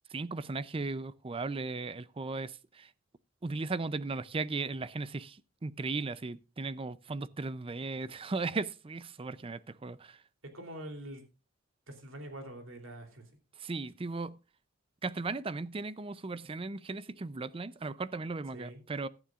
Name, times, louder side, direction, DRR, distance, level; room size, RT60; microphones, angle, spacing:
voice 1, 0.1-2.9 3.4-10.2 13.6-14.4 15.0-19.1, right 3 dB, 25° right, 0.5 m, -37 dB
voice 2, 10.5-11.2 11.9-13.2 18.5-18.8, right 1 dB, 65° right, 3.1 m, -44 dB
16.5 x 12.0 x 2.4 m
head